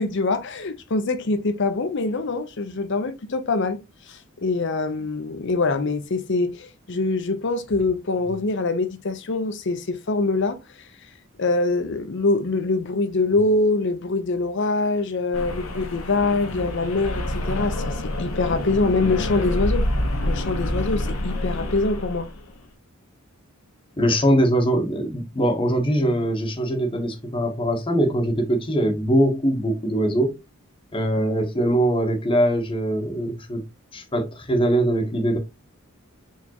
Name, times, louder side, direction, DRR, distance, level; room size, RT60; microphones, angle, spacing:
voice 1, 0.0-10.6 11.4-19.9 20.2-22.3, left 3 dB, 55° left, 0.7 m, -24 dB
sound 1, 15.3-22.6, left 1 dB, 70° left, 1.0 m, -27 dB
voice 2, 24.0-30.4 30.9-33.6 33.9-35.4, right 1 dB, 25° left, 1.0 m, -22 dB
4.5 x 3.5 x 2.8 m
head